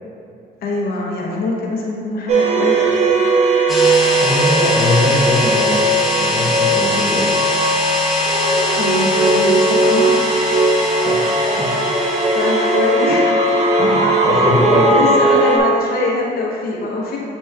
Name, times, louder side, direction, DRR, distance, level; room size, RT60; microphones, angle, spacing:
voice 1, 0.6-2.8 8.7-10.2 12.3-13.4 14.0-17.2, left 2 dB, 65° left, -3 dB, 0.9 m, -23 dB
sound 1, 2.3-15.6, right 2 dB, 45° right, 0.7 m, -17 dB
sound 2, 3.7-13.0, left 2 dB, ahead, 0.9 m, -22 dB
voice 2, 4.2-7.6 11.0-11.7 13.8-15.1, left 2 dB, 25° left, -4 dB, 0.7 m, -21 dB
7.8 x 2.9 x 2.3 m, 2.4 s
cardioid pair, 110°, 17 cm